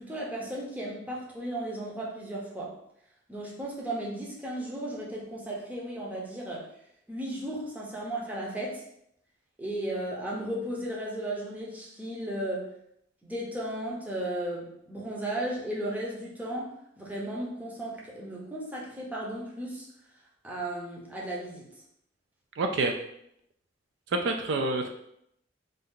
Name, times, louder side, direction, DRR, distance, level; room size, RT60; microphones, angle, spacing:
voice 1, 0.0-2.8 3.3-6.7 7.1-8.8 9.6-12.7 13.2-19.9 20.4-21.7, right 1 dB, 10° right, -4 dB, 0.6 m, -35 dB
voice 2, 22.6-22.9 24.1-24.9, right 2 dB, 65° right, 4 dB, 0.3 m, -27 dB
2.6 x 2.3 x 3.6 m, 0.75 s
head